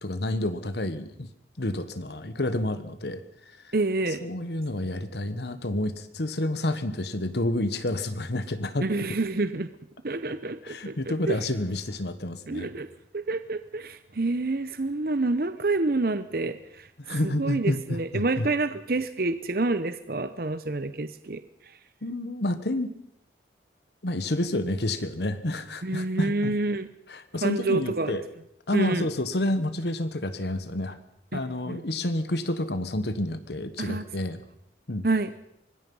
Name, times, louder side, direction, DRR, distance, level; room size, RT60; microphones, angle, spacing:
voice 1, 0.0-1.3 1.6-3.2 3.6-3.7 4.1-8.9 10.6-12.7 17.0-18.5 22.0-22.9 24.0-26.5 27.1-28.2 28.7-31.0 31.3-34.4 34.9-35.1, left 1 dB, 65° left, 11 dB, 1.3 m, -29 dB
voice 2, 3.7-4.2 8.8-9.7 10.0-11.4 12.5-12.9 13.1-16.9 17.2-21.4 25.8-26.9 27.4-28.1 28.7-29.1 31.3-31.8 33.8-34.1 35.0-35.3, right 2 dB, 55° right, 12 dB, 0.8 m, -28 dB
25.0 x 20.0 x 5.5 m, 0.78 s
head